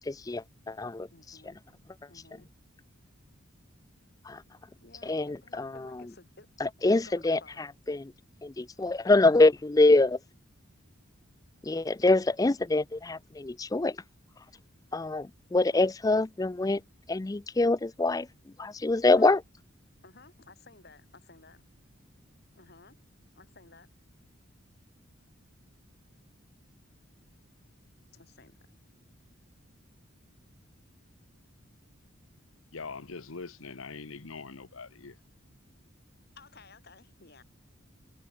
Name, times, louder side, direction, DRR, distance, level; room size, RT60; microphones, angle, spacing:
voice 1, 0.1-1.4 4.3-4.4 5.0-5.9 6.6-8.1 8.4-10.2 11.6-14.0 14.9-16.8 17.1-18.3 18.6-19.4, left 2 dB, 15° left, 0.4 m, -25 dB
voice 2, 1.1-1.6 2.1-2.5 4.8-6.5 7.0-7.7 15.5-15.9 19.1-19.4 20.0-21.6 22.5-23.0 23.3-23.9 28.1-28.5 36.4-37.4, left 3 dB, 50° left, 2.6 m, -55 dB
voice 3, 32.7-35.2, left 4 dB, 80° left, 1.1 m, -42 dB
head